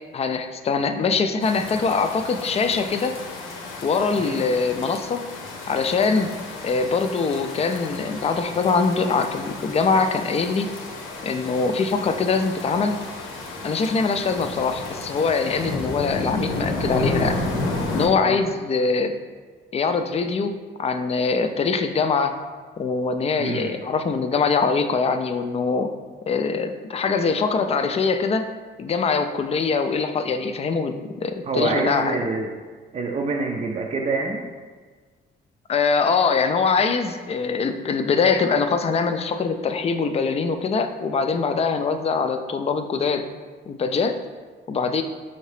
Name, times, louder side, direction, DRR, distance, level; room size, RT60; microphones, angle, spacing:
voice 1, 0.1-3.2 3.8-5.2 5.7-6.3 6.6-10.7 11.2-13.0 13.6-17.4 17.9-19.1 19.7-22.3 22.8-25.9 26.3-28.5 28.8-32.2 35.7-43.2 43.7-44.2 44.7-45.0, left 4 dB, 30° left, 8 dB, 0.4 m, -23 dB
sound 1, 1.4-18.1, left 2 dB, 85° left, 0.8 m, -32 dB
voice 2, 23.4-23.7 31.5-32.5 32.9-34.4, right 3 dB, 35° right, 0 dB, 0.5 m, -26 dB
5.7 x 2.7 x 3.2 m, 1.4 s
cardioid pair, 90°, 20 cm